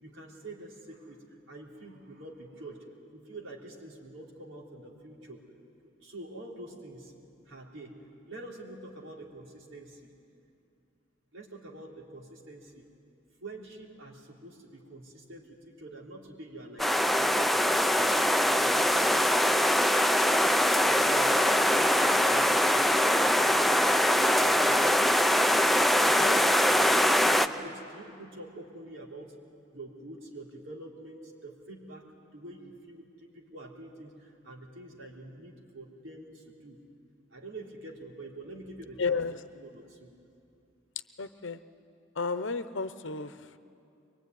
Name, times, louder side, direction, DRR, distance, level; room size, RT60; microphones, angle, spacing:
voice 1, 0.0-5.4 5.8-7.1 7.5-10.1 11.3-12.9 13.4-18.1 18.4-20.0 20.4-23.7 24.1-25.9 26.2-26.9 27.2-29.4 29.7-36.8 37.3-39.2 39.5-40.1, right 1 dB, 80° right, -2 dB, 3.7 m, -46 dB
sound 1, 16.8-27.5, equal, ahead, 0.6 m, -23 dB
voice 2, 39.0-39.3 41.2-41.6 42.2-43.6, left 4 dB, 70° left, 12 dB, 0.9 m, -32 dB
23.0 x 22.5 x 9.5 m, 2.6 s
head